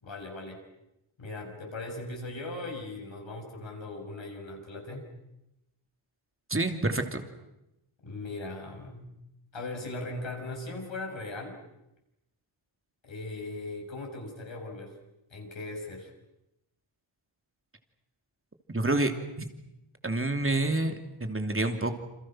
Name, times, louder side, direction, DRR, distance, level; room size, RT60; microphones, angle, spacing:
voice 1, 0.0-0.6 1.2-5.1 8.0-9.1 9.5-11.6 13.0-14.9 15.3-16.1, left 2 dB, 65° left, 1 dB, 7.0 m, -39 dB
voice 2, 6.5-7.2 18.7-19.1 19.4-19.5 20.0-21.9, right 2 dB, 25° right, 6 dB, 2.9 m, -28 dB
28.5 x 27.0 x 6.3 m, 0.89 s
wide cardioid pair, 85°, 50 cm